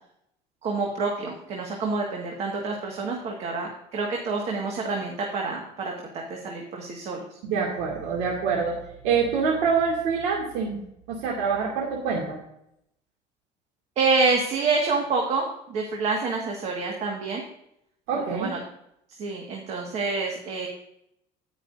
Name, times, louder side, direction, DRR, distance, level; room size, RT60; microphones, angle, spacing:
voice 1, 0.6-7.2 14.0-17.4 18.3-18.6 19.2-20.7, right 4 dB, 45° right, 0 dB, 1.8 m, -27 dB
voice 2, 7.4-8.8 9.0-10.8 11.1-12.4 18.1-18.5, right 5 dB, 85° right, -2 dB, 2.4 m, -25 dB
18.0 x 6.1 x 2.6 m, 0.77 s
cardioid pair, 145°, 15 cm